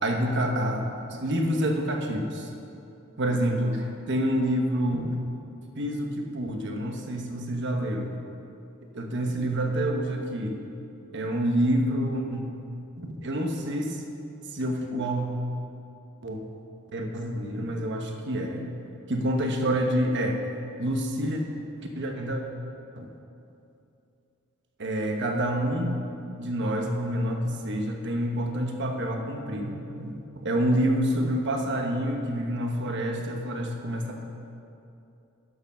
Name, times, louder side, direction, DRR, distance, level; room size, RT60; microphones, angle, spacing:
voice 1, 0.0-2.5 3.2-5.2 5.8-8.1 9.0-10.6 11.1-12.5 13.0-14.0 14.5-15.3 16.2-16.4 16.9-18.6 19.1-20.4 20.8-21.4 21.8-22.4 23.0-23.1 24.8-26.0 26.4-34.2, equal, 55° right, 2 dB, 1.2 m, -27 dB
11.0 x 7.0 x 6.1 m, 2.7 s
head